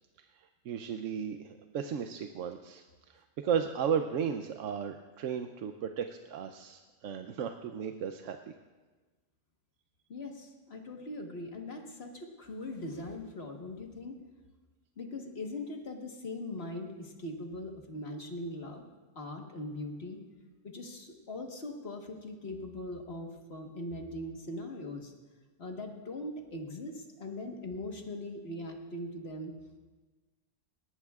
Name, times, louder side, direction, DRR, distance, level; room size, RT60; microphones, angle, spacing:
voice 1, 0.7-2.8 3.4-8.4, right 7 dB, 80° right, 6 dB, 1.0 m, -34 dB
voice 2, 10.1-14.2 15.0-18.9 19.1-20.2 20.6-25.1 25.6-29.6, left 1 dB, 55° left, 2 dB, 1.6 m, -41 dB
19.5 x 18.0 x 2.4 m, 1.3 s
omnidirectional pair, 1.3 m